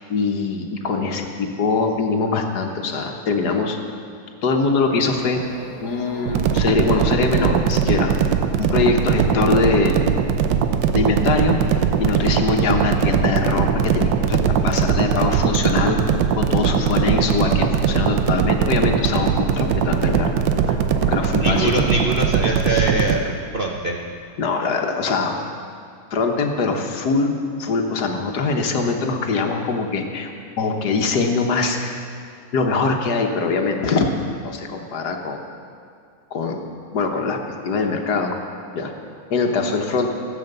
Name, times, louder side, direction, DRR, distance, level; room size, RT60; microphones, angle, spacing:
voice 1, 0.0-3.8 4.4-5.4 5.8-8.2 8.6-10.1 10.9-14.4 14.6-16.0 16.4-20.3 20.7-20.8 21.1-21.8 24.4-25.4 26.1-27.3 27.6-30.3 30.6-32.0 32.5-34.1 34.4-35.4 36.3-36.6 36.9-37.4 37.6-38.4 38.7-38.9 39.3-40.1, left 4 dB, 65° left, 3 dB, 1.6 m, -22 dB
sound 1, 4.9-23.2, equal, 5° right, 1.9 m, -39 dB
sound 2, 6.3-23.2, right 7 dB, 90° right, 1.4 m, -20 dB
voice 2, 21.4-24.0, right 2 dB, 45° right, -1 dB, 0.7 m, -23 dB
14.5 x 7.8 x 6.7 m, 2.3 s
omnidirectional pair, 1.9 m